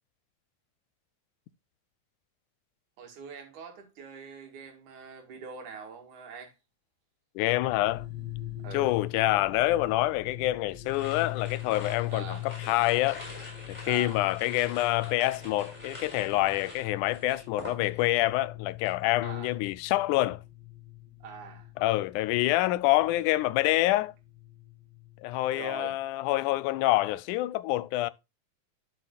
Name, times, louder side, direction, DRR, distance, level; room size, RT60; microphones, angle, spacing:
voice 1, 3.0-6.5 8.6-8.9 12.1-12.5 13.8-14.2 19.2-19.5 21.2-21.7 25.5-26.0, right 6 dB, 75° right, 3.3 m, -43 dB
voice 2, 7.4-8.1 8.7-13.2 13.7-20.4 21.8-24.1 25.2-28.1, left 17 dB, 85° left, 2.0 m, -27 dB
sound 1, 7.7-25.9, left 15 dB, 60° left, 2.5 m, -42 dB
sound 2, 10.8-18.3 18.5-19.0, left 1 dB, 10° left, 4.1 m, -46 dB
12.5 x 5.8 x 2.3 m
omnidirectional pair, 3.5 m